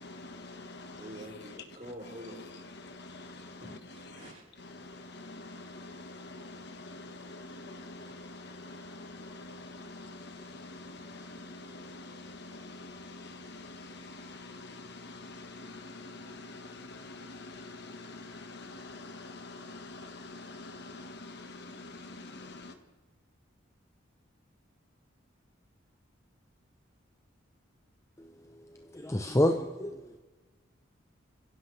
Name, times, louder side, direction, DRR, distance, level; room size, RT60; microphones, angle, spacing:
voice 1, 0.0-1.1 2.8-3.6 4.1-4.3 4.6-22.7, left 2 dB, 60° left, 1.4 m, -46 dB
voice 2, 1.0-2.5 3.6-4.4, equal, 40° right, 5.9 m, -46 dB
voice 3, 28.2-30.2, left 1 dB, 15° left, 0.7 m, -30 dB
27.0 x 15.5 x 3.3 m
head